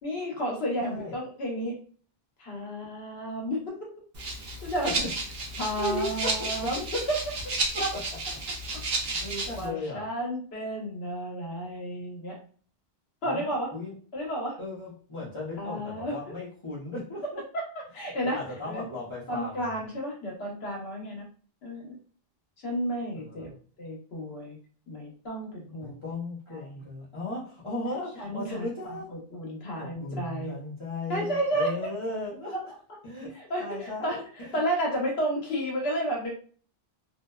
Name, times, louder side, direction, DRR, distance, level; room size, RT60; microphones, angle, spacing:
voice 1, 0.0-1.8 2.4-3.9 4.6-5.0 5.6-7.5 7.8-7.9 9.6-12.4 13.2-13.7 14.1-14.6 15.5-16.4 17.5-18.8 19.3-21.3 21.6-22.0 22.6-23.5 23.8-24.6 24.9-26.0 26.5-26.7 28.2-30.5 31.1-31.8 32.5-32.6 33.3-34.2 34.5-36.3, equal, 80° left, -1 dB, 1.1 m, -32 dB
voice 2, 0.8-1.1 4.8-5.1 5.8-6.7 7.7-8.0 8.7-10.1 13.2-13.9 14.6-17.4 18.2-19.8 23.1-23.5 25.8-29.1 29.8-32.7 33.0-33.3 33.6-34.6, left 2 dB, 30° left, -8 dB, 0.8 m, -36 dB
Rattle (instrument), 4.1-9.7, right 2 dB, 60° right, 0.7 m, -32 dB
2.6 x 2.1 x 2.2 m, 0.43 s
omnidirectional pair, 1.0 m